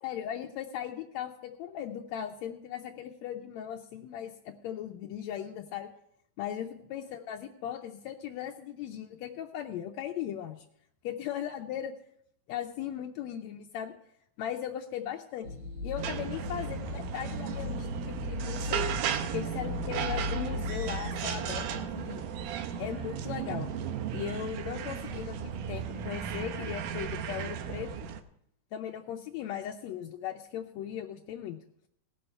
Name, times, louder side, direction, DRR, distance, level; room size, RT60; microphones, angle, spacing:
voice 1, 0.0-5.9 6.4-10.6 11.0-11.9 12.5-13.9 14.4-15.5 15.8-18.8 19.3-21.7 21.9-22.2 22.8-23.7 24.1-27.9 28.7-31.6, left 10 dB, 85° left, 3 dB, 1.5 m, -38 dB
sound 1, 15.4-21.8, left 3 dB, 55° right, 1.4 m, -38 dB
sound 2, 16.0-28.2, right 8 dB, 75° right, 2.2 m, -35 dB
18.0 x 6.8 x 4.4 m, 0.71 s
omnidirectional pair, 3.9 m